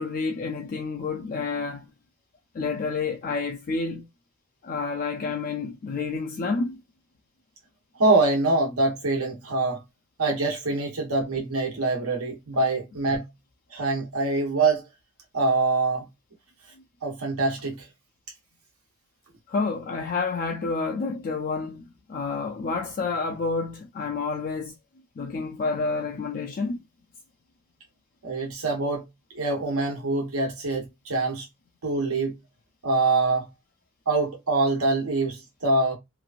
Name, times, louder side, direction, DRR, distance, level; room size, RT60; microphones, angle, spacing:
voice 1, 0.0-1.8 2.5-4.0 4.6-6.8 19.5-21.8 22.1-24.7 25.2-26.8, left 4 dB, 40° left, 0.3 m, -29 dB
voice 2, 8.0-9.8 10.2-13.3 13.7-14.8 15.3-16.0 17.0-17.8 28.2-29.1 29.3-31.4 31.8-32.3 32.8-33.4 34.1-36.0, right 3 dB, 90° right, 1.1 m, -24 dB
3.0 x 2.5 x 2.4 m
head